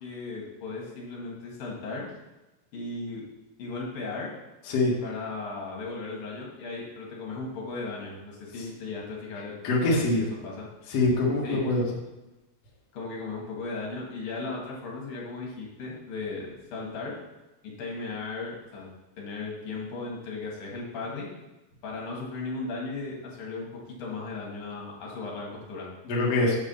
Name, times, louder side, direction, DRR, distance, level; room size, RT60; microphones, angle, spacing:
voice 1, 0.0-2.1 2.7-3.3 3.6-4.3 5.0-9.5 9.8-10.7 11.4-11.6 12.9-17.2 17.6-18.9 19.2-21.3 21.8-25.9, left 3 dB, 60° left, -3 dB, 2.7 m, -36 dB
voice 2, 9.6-10.2 10.9-11.8 26.0-26.5, left 2 dB, 75° left, -4 dB, 1.3 m, -24 dB
7.4 x 4.8 x 6.9 m, 1.0 s
omnidirectional pair, 5.6 m